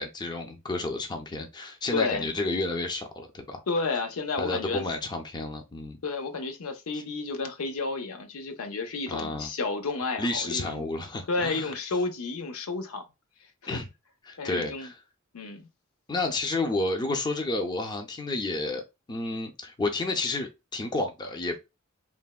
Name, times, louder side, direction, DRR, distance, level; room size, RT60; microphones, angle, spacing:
voice 1, 0.0-3.6 4.4-6.0 6.9-7.0 9.1-9.5 10.2-11.7 13.7-13.9 14.2-15.0 16.1-18.8 19.1-21.6, left 2 dB, 20° left, 0.4 m, -31 dB
voice 2, 1.9-2.3 3.7-4.8 6.0-10.8 11.3-13.0 13.6-13.8 14.4-14.9 15.3-15.7, left 3 dB, 80° left, 0.6 m, -31 dB
3.3 x 2.1 x 2.2 m
head